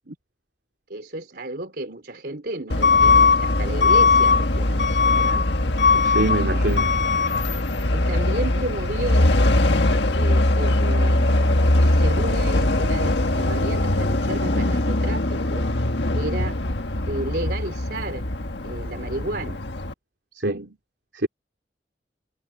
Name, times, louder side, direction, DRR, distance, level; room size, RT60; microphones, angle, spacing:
voice 1, 0.9-5.4 7.9-9.3 10.2-15.7 16.1-16.6 17.1-18.3 18.6-19.6, right 1 dB, 65° right, 3.8 m, -32 dB
Truck / Alarm, 2.7-19.9, left 2 dB, 85° left, 1.6 m, -20 dB
voice 2, 6.0-6.9 20.4-20.7 21.2-21.3, right 2 dB, 80° right, 3.1 m, -24 dB
head